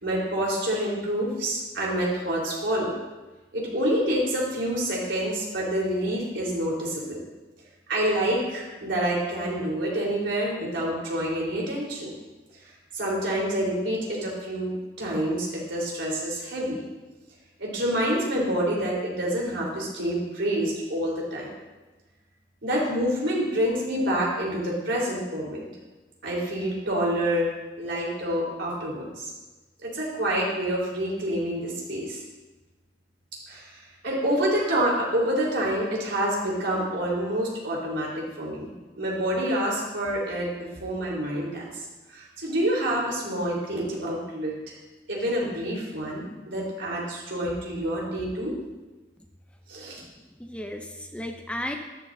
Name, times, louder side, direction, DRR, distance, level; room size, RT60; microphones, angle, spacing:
voice 1, 0.0-2.9 3.5-7.2 7.9-12.1 12.9-16.8 17.6-21.5 22.6-25.7 26.2-27.5 27.8-29.3 29.8-32.2 33.5-33.8 34.0-38.7 39.0-41.8 42.1-44.7 45.1-48.5 49.7-50.0, right 1 dB, 80° right, -4 dB, 4.0 m, -27 dB
voice 2, 50.0-51.8, left 1 dB, 5° left, 4 dB, 0.6 m, -35 dB
13.0 x 11.5 x 2.7 m, 1.2 s
head